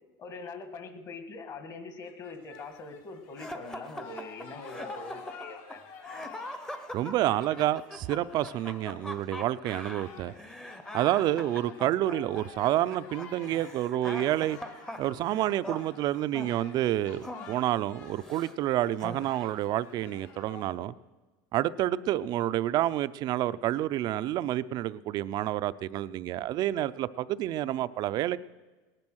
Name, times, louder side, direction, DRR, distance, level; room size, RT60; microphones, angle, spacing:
voice 1, 0.2-5.8, left 3 dB, 40° left, 8 dB, 1.8 m, -43 dB
sound 1, 2.0-16.0 16.4-20.6, left 5 dB, 70° left, 3.3 m, -50 dB
sound 2, 3.4-18.5 19.0-19.7, left 1 dB, 5° left, 0.8 m, -42 dB
voice 2, 6.9-10.3 10.9-14.6 15.0-20.9 21.5-28.4, right 13 dB, 45° right, 15 dB, 0.5 m, -29 dB
18.0 x 10.5 x 6.3 m, 1.2 s
supercardioid pair, 135°, 10 cm